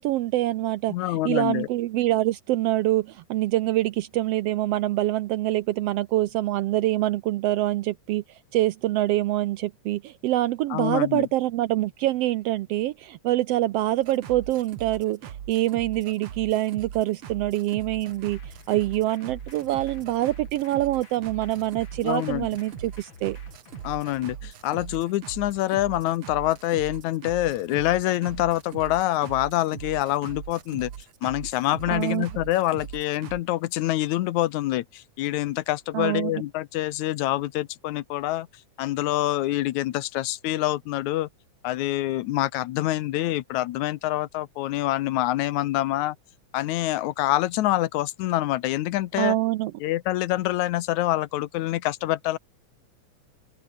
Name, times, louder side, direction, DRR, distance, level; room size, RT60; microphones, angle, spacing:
voice 1, 0.0-23.4 31.9-32.3 35.9-36.4 49.2-49.7, right 15 dB, 85° right, 1.3 m, -25 dB
voice 2, 0.9-1.7 10.7-11.3 22.0-22.5 23.8-30.9 31.2-38.5 38.8-41.3 41.6-46.2 46.5-49.4 49.8-52.4, left 15 dB, 80° left, 2.1 m, -26 dB
sound 1, 14.0-33.4, right 9 dB, 55° right, 2.0 m, -41 dB
sound 2, 18.0-24.2, left 5 dB, 40° left, 3.5 m, -50 dB
open air
omnidirectional pair, 3.5 m